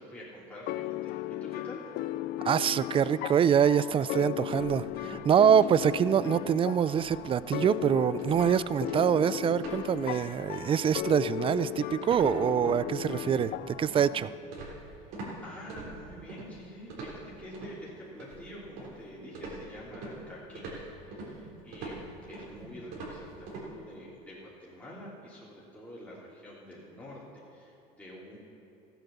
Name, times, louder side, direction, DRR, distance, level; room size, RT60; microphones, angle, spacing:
voice 1, 0.0-1.8 14.9-15.1 15.4-27.2 27.5-28.4, equal, 10° left, -7 dB, 3.1 m, -47 dB
sound 1, 0.7-14.4, left 15 dB, 60° left, 0.4 m, -36 dB
voice 2, 2.4-14.3, right 8 dB, 30° right, 17 dB, 0.4 m, -25 dB
sound 2, 4.5-5.3 5.6-5.9 6.3-6.5 6.9-7.3 7.5-7.8 8.2-8.5 8.9-9.8 10.1-10.4 10.7-15.3 15.7-16.5 16.9-17.7 18.2-19.0 19.3-23.7, right 3 dB, 70° right, 3.7 m, -43 dB
14.0 x 8.4 x 7.0 m, 2.7 s
supercardioid pair, 95°, 17 cm